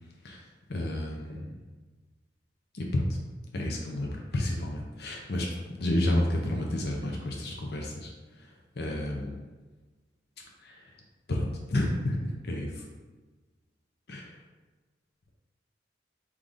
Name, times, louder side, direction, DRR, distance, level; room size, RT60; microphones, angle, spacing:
voice 1, 0.7-1.5 2.7-3.1 3.5-8.1 8.8-9.4 10.6-10.8 11.3-12.8 14.1-14.2, left 1 dB, 60° left, 0 dB, 0.6 m, -30 dB
4.7 x 2.6 x 3.6 m, 1.3 s
head